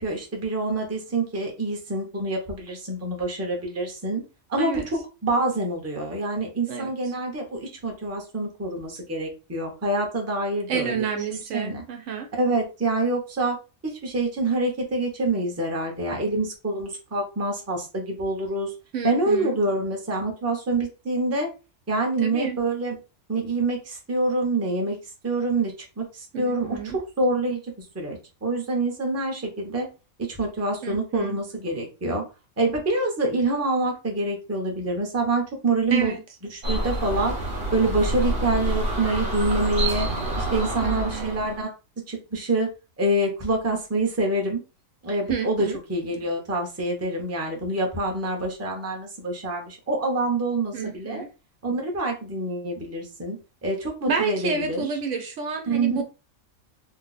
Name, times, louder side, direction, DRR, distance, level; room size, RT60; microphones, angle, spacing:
voice 1, 0.0-4.2 4.5-11.0 11.5-11.8 12.4-13.6 13.8-18.7 19.0-21.5 21.9-23.0 23.3-25.0 25.2-29.9 30.2-32.2 32.6-36.1 36.5-40.1 40.4-41.7 42.1-42.7 43.0-44.6 45.0-51.2 51.6-53.4 53.6-54.9 55.7-56.0, right 2 dB, 15° right, 0.7 m, -26 dB
voice 2, 6.7-7.1 10.7-12.3 18.9-19.6 22.2-22.6 26.3-27.0 30.8-31.4 35.9-36.2 40.8-41.3 45.3-45.8 50.7-51.3 54.1-56.0, right 6 dB, 70° right, 0.9 m, -29 dB
sound 1, 36.6-41.6, right 1 dB, 45° right, 1.0 m, -27 dB
2.7 x 2.2 x 4.0 m
omnidirectional pair, 1.4 m